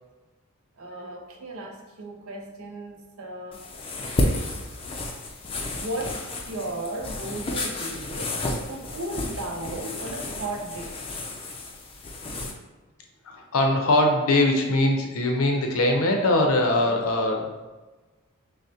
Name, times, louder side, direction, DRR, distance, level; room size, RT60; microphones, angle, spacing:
voice 1, 0.8-3.6 5.7-8.4 8.7-11.0 16.8-17.0, right 1 dB, 80° right, 1 dB, 0.7 m, -35 dB
sound 1, 3.5-12.5, left 2 dB, 25° left, 0.4 m, -31 dB
voice 2, 13.2-17.5, left 1 dB, 80° left, 2 dB, 0.6 m, -22 dB
6.2 x 2.1 x 2.8 m, 1.2 s
head